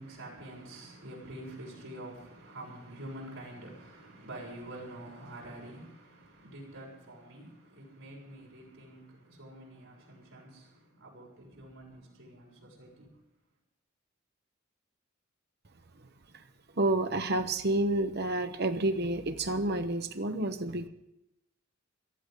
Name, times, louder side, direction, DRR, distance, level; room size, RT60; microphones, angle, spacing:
voice 1, 0.0-13.1, right 1 dB, 80° right, 6.8 m, -47 dB
voice 2, 16.8-20.9, right 2 dB, 50° right, 1.1 m, -29 dB
18.5 x 14.0 x 5.2 m
head